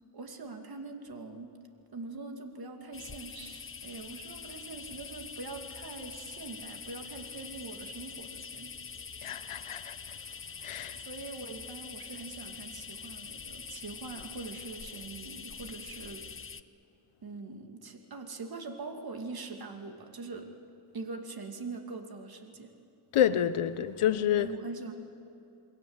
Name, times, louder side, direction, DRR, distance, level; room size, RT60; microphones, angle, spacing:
voice 1, 0.1-1.5 1.9-8.7 11.1-16.2 17.2-20.5 20.9-22.7 24.4-24.9, right 3 dB, 45° right, 2.5 m, -43 dB
sound 1, 2.9-16.6, left 6 dB, 25° left, 0.7 m, -44 dB
voice 2, 9.2-10.2 10.6-11.0 23.1-24.5, left 10 dB, 90° left, 1.1 m, -28 dB
28.0 x 21.5 x 8.1 m
wide cardioid pair, 120°, 49 cm